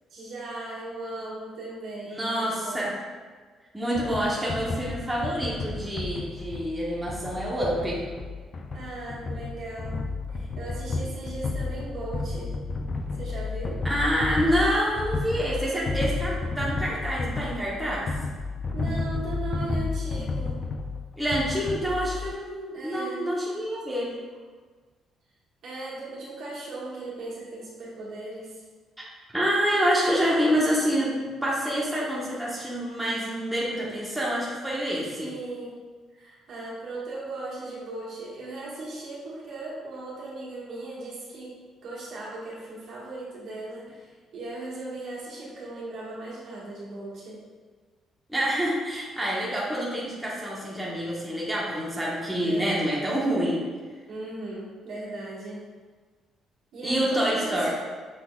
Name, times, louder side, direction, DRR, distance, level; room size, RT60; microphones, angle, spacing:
voice 1, 0.1-2.8 8.7-10.0 10.3-12.5 13.1-13.8 18.7-20.6 22.7-23.3 25.6-28.6 33.6-34.0 35.2-35.7 36.1-41.5 41.8-47.4 52.4-52.9 54.1-55.6 56.7-57.7, right 2 dB, 65° right, -7 dB, 1.5 m, -37 dB
voice 2, 2.1-2.9 3.7-8.1 13.8-18.1 21.2-24.1 29.3-31.1 31.4-35.3 48.3-53.6 56.8-57.7, equal, 5° right, -6 dB, 0.9 m, -27 dB
sound 1, 4.0-22.3, left 3 dB, 35° left, 0.3 m, -32 dB
6.1 x 3.5 x 2.3 m, 1.5 s
cardioid pair, 120°, 0 cm